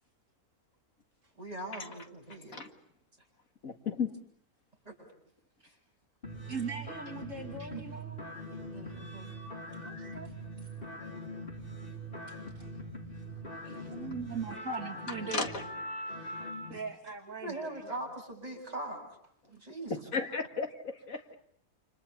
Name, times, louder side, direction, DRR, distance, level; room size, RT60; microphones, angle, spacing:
voice 1, 1.4-2.6 4.8-5.0 5.6-5.7 7.6-7.8 8.7-9.3 13.7-13.9 17.4-19.1 19.5-19.9, right 1 dB, 25° right, 1 dB, 8.2 m, -41 dB
voice 2, 3.6-4.1 15.3-15.6 20.1-21.4, left 5 dB, 60° left, 6 dB, 2.2 m, -34 dB
sound 1, 6.2-16.8, equal, 35° left, 3.8 m, -42 dB
voice 3, 6.5-8.3 9.8-10.3 12.3-12.7 13.6-15.6 16.1-16.4 16.7-18.1, right 4 dB, 55° right, 1 dB, 2.9 m, -41 dB
29.5 x 28.0 x 7.1 m, 0.63 s
omnidirectional pair, 1.6 m